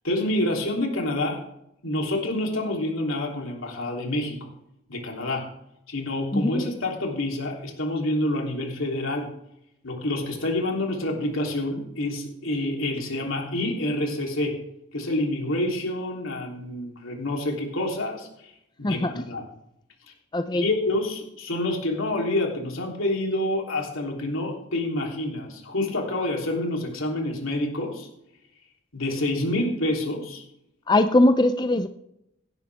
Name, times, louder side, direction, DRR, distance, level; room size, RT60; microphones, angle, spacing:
voice 1, 0.0-1.4 1.8-4.5 4.9-5.5 5.9-9.3 9.8-14.6 14.9-19.4 20.1-20.2 20.5-28.1 28.9-30.4, left 1 dB, 85° left, 0 dB, 3.3 m, -27 dB
voice 2, 6.3-6.6 18.8-19.2 20.3-20.7 30.9-31.9, left 1 dB, 20° left, 9 dB, 0.5 m, -21 dB
17.0 x 10.5 x 3.5 m, 0.80 s
head